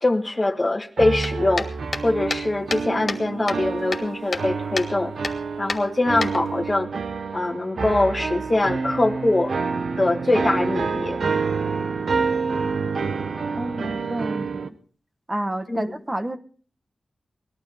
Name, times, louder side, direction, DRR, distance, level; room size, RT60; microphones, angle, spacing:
voice 1, 0.0-1.7 2.0-5.1 5.6-6.9 7.3-9.5 10.0-11.2 15.7-15.9, left 2 dB, 35° left, 5 dB, 1.4 m, -22 dB
sound 1, 1.0-14.7, right 4 dB, 80° right, 0.9 m, -28 dB
sound 2, 1.2-3.2 3.5-4.5 4.8-4.9 5.2-5.4 5.7-6.7, left 3 dB, 60° left, 1.5 m, -30 dB
voice 2, 13.5-14.8 15.3-16.4, right 1 dB, 25° right, 9 dB, 1.2 m, -29 dB
19.5 x 12.0 x 4.3 m, 0.41 s
cardioid pair, 60°, 0 cm